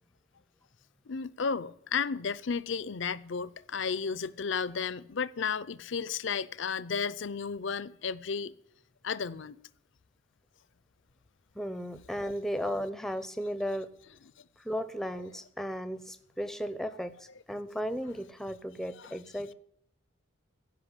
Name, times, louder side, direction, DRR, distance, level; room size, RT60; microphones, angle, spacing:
voice 1, 1.1-8.5 9.0-9.6 12.3-12.4 18.9-19.2, left 6 dB, 65° left, 0.6 m, -33 dB
voice 2, 11.6-13.9 14.6-19.5, equal, ahead, 0.6 m, -35 dB
15.5 x 5.6 x 9.7 m
head